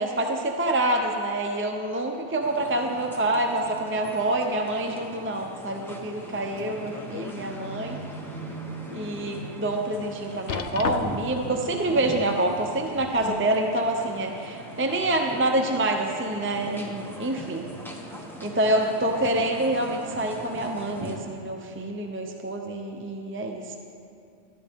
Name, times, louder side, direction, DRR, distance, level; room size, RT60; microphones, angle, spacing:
voice 1, 0.0-8.0 8.9-17.7 18.4-23.7, right 1 dB, 15° right, 2 dB, 0.4 m, -27 dB
sound 1, 2.4-21.2, right 1 dB, ahead, 0.9 m, -40 dB
sound 2, 6.6-7.4 7.9-8.0 8.6-8.7 10.5-11.4 12.7-13.5 14.4-14.5, left 8 dB, 70° left, 0.8 m, -34 dB
13.0 x 13.0 x 3.6 m, 2.5 s
omnidirectional pair, 1.3 m